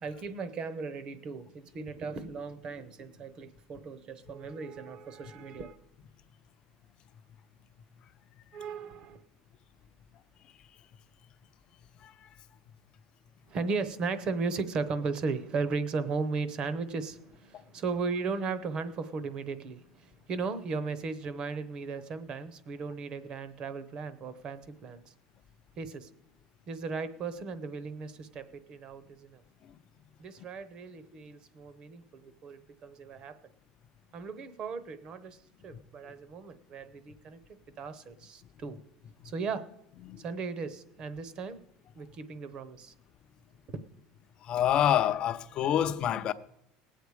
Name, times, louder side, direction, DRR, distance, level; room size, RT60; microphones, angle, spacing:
voice 1, 0.0-5.8 8.5-9.2 13.5-25.1 25.8-26.1 26.7-29.4 30.2-33.4 34.1-38.8 39.2-39.7 40.2-41.6 41.9-42.9 43.7-43.8, right 4 dB, 30° right, 0.8 m, -36 dB
voice 2, 44.5-46.3, left 10 dB, 35° left, 0.5 m, -26 dB
19.0 x 8.3 x 4.8 m
cardioid pair, 170°, 3 cm